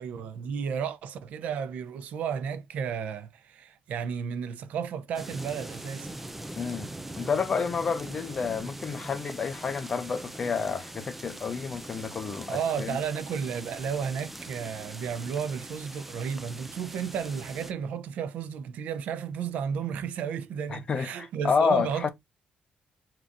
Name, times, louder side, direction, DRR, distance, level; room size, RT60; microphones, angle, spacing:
voice 1, 0.0-6.2 12.5-22.1, right 7 dB, 80° right, 0.7 m, -33 dB
sound 1, 5.1-17.7, right 1 dB, 5° right, 0.4 m, -42 dB
voice 2, 6.6-13.0 20.7-22.1, left 5 dB, 35° left, 0.6 m, -29 dB
4.7 x 3.8 x 2.6 m
cardioid pair, 150°, 3 cm